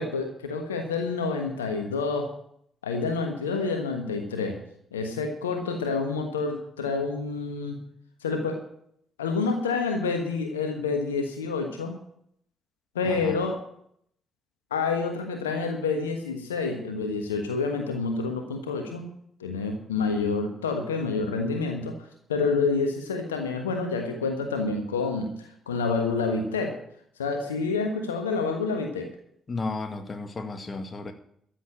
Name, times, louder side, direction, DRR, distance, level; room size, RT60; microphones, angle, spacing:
voice 1, 0.0-2.3 2.8-4.6 4.9-7.8 8.2-8.6 9.2-12.0 12.9-13.6 14.7-19.1 19.4-22.0 22.3-25.3 25.7-26.7 27.2-29.1, left 4 dB, 80° left, 4 dB, 1.3 m, -28 dB
voice 2, 29.5-31.1, left 3 dB, 30° left, 7 dB, 1.9 m, -33 dB
14.0 x 7.4 x 8.6 m, 0.69 s
figure-of-eight pair, 40°, 0 cm